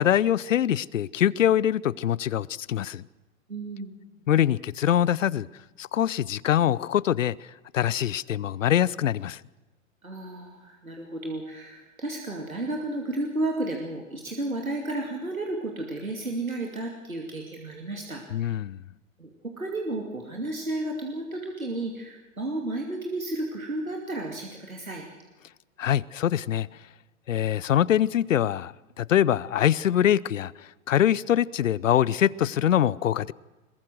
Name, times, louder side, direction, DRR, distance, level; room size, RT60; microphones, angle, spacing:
voice 1, 0.0-3.0 4.3-5.5 5.8-7.3 7.7-9.4 18.3-18.8 25.8-26.7 27.3-33.3, left 10 dB, 70° left, 0.7 m, -24 dB
voice 2, 3.5-4.0 10.0-18.5 19.2-25.1, right 2 dB, 85° right, 2.6 m, -32 dB
22.0 x 21.5 x 6.3 m
figure-of-eight pair, 100°, 40 cm